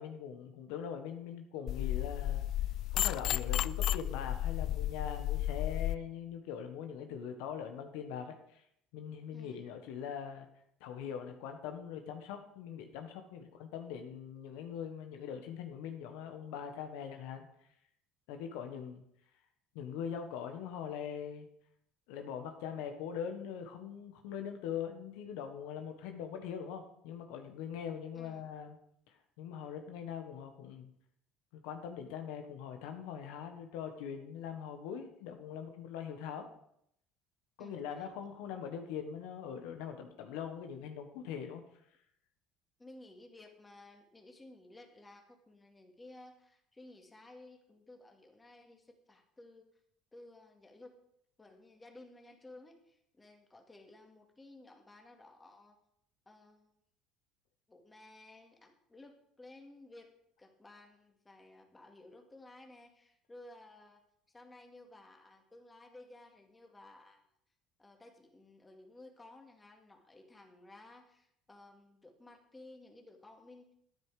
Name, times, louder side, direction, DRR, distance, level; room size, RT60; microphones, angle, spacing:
voice 1, 0.0-2.4 2.9-8.6 8.9-10.5 10.8-17.5 18.3-19.0 19.7-21.5 22.1-28.8 29.4-30.9 31.5-36.5 37.6-41.6, left 8 dB, 80° left, 5 dB, 1.4 m, -42 dB
sound 1, 1.7-6.0, left 13 dB, 60° left, 0.3 m, -33 dB
voice 2, 9.3-9.7 28.1-28.4 37.6-38.3 42.8-49.7 50.1-51.0 51.4-55.8 56.3-56.7 57.7-60.1 60.4-64.0 64.3-67.2 67.8-73.7, left 2 dB, 15° left, 3 dB, 2.3 m, -56 dB
11.5 x 9.6 x 5.0 m, 0.73 s
supercardioid pair, 100°, 0 cm